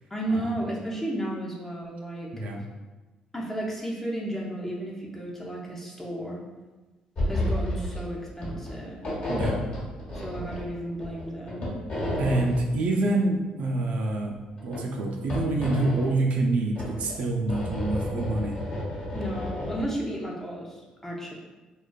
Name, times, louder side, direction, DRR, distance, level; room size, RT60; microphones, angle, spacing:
voice 1, 0.1-2.3 3.3-6.4 7.3-9.0 10.1-11.6 19.1-21.3, right 1 dB, 15° left, -3 dB, 0.6 m, -33 dB
sound 1, 7.2-8.0 8.3-8.7 9.0-10.7 11.0-12.6 14.4-14.8 15.3-16.1 16.8-19.8, left 1 dB, 50° left, 1.0 m, -31 dB
voice 2, 12.2-14.4 14.6-18.5, right 2 dB, 65° right, 1 dB, 0.3 m, -26 dB
2.5 x 2.2 x 2.2 m, 1.2 s
cardioid pair, 80°, 2 cm